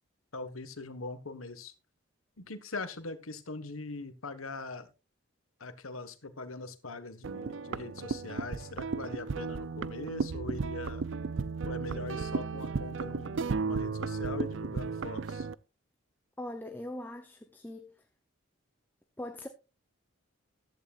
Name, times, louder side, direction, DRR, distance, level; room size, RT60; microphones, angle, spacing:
voice 1, 0.3-1.7 2.4-4.9 5.6-11.1 11.6-15.5, left 3 dB, 85° left, 1.5 m, -41 dB
sound 1, 7.2-15.5, right 4 dB, 65° right, 0.5 m, -34 dB
voice 2, 16.4-17.9 19.2-19.5, left 1 dB, 10° left, 0.7 m, -41 dB
14.5 x 11.5 x 2.5 m
head